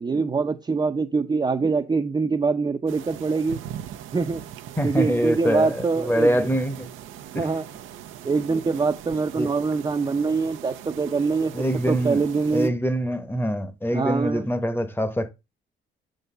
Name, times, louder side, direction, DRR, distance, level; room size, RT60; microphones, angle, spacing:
voice 1, 0.0-3.6 4.1-4.4 4.8-6.4 7.4-7.6 8.2-12.7 13.9-14.5, right 4 dB, 20° right, 0.6 m, -24 dB
sound 1, 2.9-12.7, right 11 dB, 85° right, 0.7 m, -40 dB
voice 2, 4.8-6.9 7.3-7.5 9.4-9.5 11.5-12.2 12.5-15.3, equal, 10° left, 1.0 m, -24 dB
7.0 x 4.0 x 5.5 m
cardioid pair, 90°, 20 cm